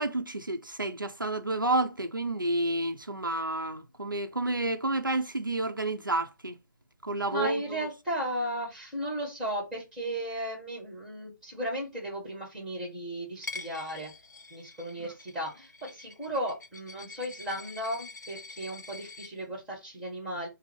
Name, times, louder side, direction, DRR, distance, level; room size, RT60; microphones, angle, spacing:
voice 1, 0.0-6.6 7.0-7.9, right 2 dB, 85° right, 0.7 m, -30 dB
voice 2, 7.3-14.1 14.5-20.5, equal, 5° right, 1.3 m, -35 dB
Coin (dropping), 13.4-19.3, left 3 dB, 60° left, 0.8 m, -45 dB
5.5 x 2.0 x 4.5 m
figure-of-eight pair, 150°, 11 cm